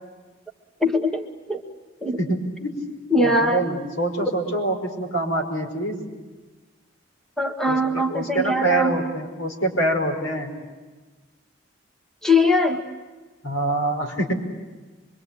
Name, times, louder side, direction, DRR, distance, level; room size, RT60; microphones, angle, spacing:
voice 1, 0.8-1.6 2.0-2.2 3.1-3.7 4.2-4.3 7.4-9.0 12.2-12.8, left 2 dB, ahead, 4 dB, 1.3 m, -21 dB
voice 2, 2.2-2.8 3.2-6.1 7.7-10.5 13.4-14.3, right 2 dB, 85° left, 2 dB, 5.2 m, -25 dB
26.0 x 23.5 x 8.4 m, 1.3 s
head